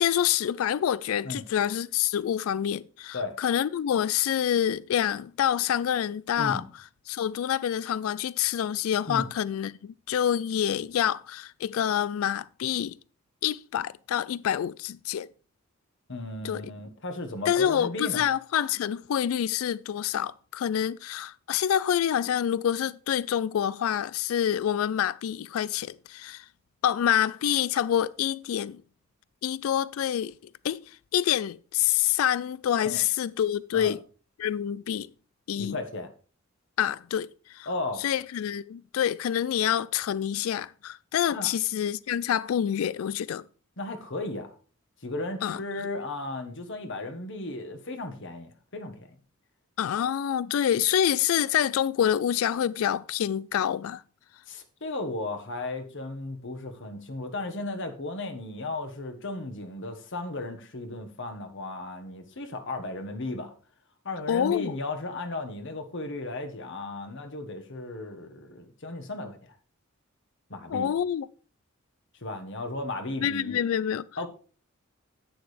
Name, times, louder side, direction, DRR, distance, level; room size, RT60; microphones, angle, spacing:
voice 1, 0.0-6.6 7.1-13.0 13.4-15.3 16.4-16.6 17.5-26.4 26.8-28.8 29.4-30.3 30.6-30.8 31.1-34.0 34.4-35.1 35.5-35.8 36.8-37.7 38.0-43.5 45.4-45.6 49.8-54.0 64.3-64.7 70.7-71.3 73.2-74.1, left 9 dB, 80° left, 0.3 m, -27 dB
voice 2, 16.1-18.3 32.8-33.0 33.7-33.9 35.6-36.1 37.7-38.0 41.3-41.5 43.8-44.5 45.0-49.1 54.5-63.5 64.0-69.5 70.5-70.9 72.2-73.6 74.2-74.3, left 2 dB, 60° left, 1.4 m, -35 dB
11.0 x 8.9 x 3.3 m
head